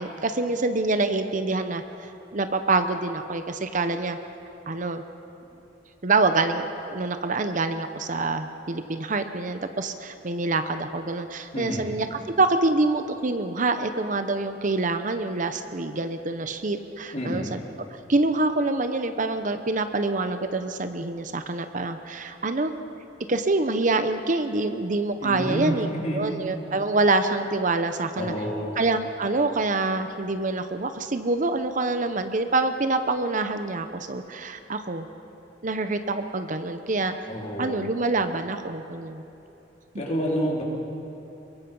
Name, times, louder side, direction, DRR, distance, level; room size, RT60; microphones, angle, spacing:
voice 1, 0.0-4.2 4.7-5.0 6.0-17.6 18.1-22.7 23.3-25.9 26.1-28.3 28.8-35.1 35.6-37.1 37.6-39.2, right 3 dB, 45° right, 8 dB, 0.9 m, -26 dB
voice 2, 11.5-11.9 17.1-17.5 25.2-26.3 28.2-28.7 37.3-37.9 40.0-40.6, equal, 40° left, -3 dB, 4.3 m, -29 dB
24.0 x 22.5 x 5.5 m, 2.9 s
head